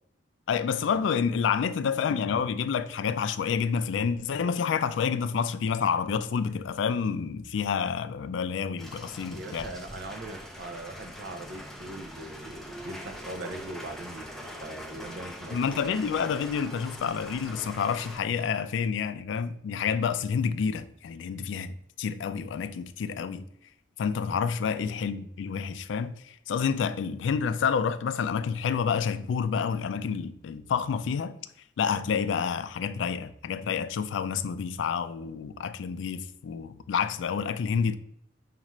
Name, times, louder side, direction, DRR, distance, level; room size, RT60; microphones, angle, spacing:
voice 1, 0.5-9.7 15.5-23.5 24.0-31.4 31.8-38.0, left 6 dB, 75° left, 0.3 m, -29 dB
sound 1, 8.8-18.2, equal, ahead, 0.5 m, -42 dB
voice 2, 9.3-15.6 24.7-24.9, right 2 dB, 65° right, 0.5 m, -41 dB
5.3 x 2.4 x 3.0 m
head